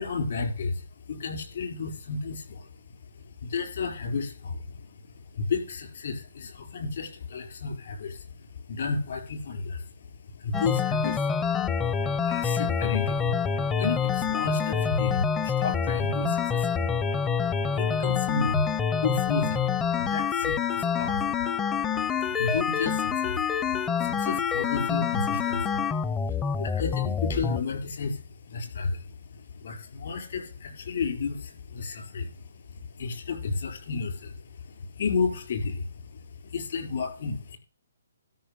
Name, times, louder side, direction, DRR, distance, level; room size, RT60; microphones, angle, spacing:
voice 1, 0.0-37.6, left 4 dB, 60° left, 4 dB, 4.3 m, -33 dB
sound 1, 10.5-27.6, left 6 dB, 15° left, 0.5 m, -27 dB
13.0 x 5.9 x 6.6 m, 0.43 s
figure-of-eight pair, 135°, 0 cm